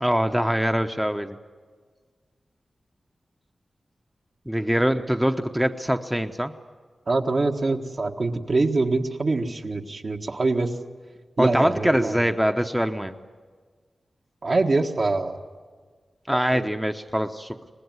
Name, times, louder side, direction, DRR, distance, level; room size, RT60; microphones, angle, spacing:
voice 1, 0.0-1.4 4.5-6.5 11.4-13.1 16.3-17.6, equal, 5° right, 6 dB, 0.9 m, -23 dB
voice 2, 7.1-10.7 11.4-12.2 14.4-15.4 16.3-16.7, right 3 dB, 55° right, 2 dB, 1.6 m, -24 dB
24.0 x 19.5 x 9.5 m, 1.5 s
cardioid pair, 65°, 0 cm